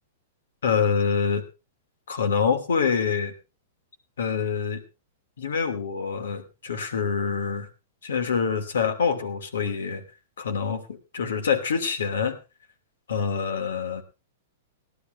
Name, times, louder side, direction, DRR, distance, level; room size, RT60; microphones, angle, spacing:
voice 1, 0.6-1.4 2.1-3.3 4.2-4.8 5.4-7.7 8.0-10.0 10.4-12.4 13.1-14.0, left 6 dB, 85° left, 6 dB, 2.7 m, -26 dB
18.5 x 12.0 x 3.3 m, 0.30 s
hypercardioid pair, 140°, 0 cm